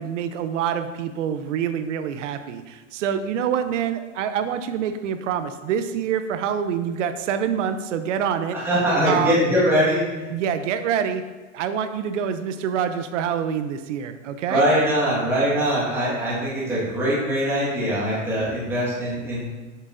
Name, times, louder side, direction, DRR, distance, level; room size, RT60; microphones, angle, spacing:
voice 1, 0.0-8.6 9.1-9.4 10.3-11.2 11.5-14.6, right 8 dB, 65° right, 9 dB, 0.7 m, -26 dB
voice 2, 8.5-10.3 14.5-19.5, equal, 5° right, -8 dB, 1.5 m, -22 dB
8.0 x 6.1 x 2.6 m, 1.3 s
supercardioid pair, 165°, 40 cm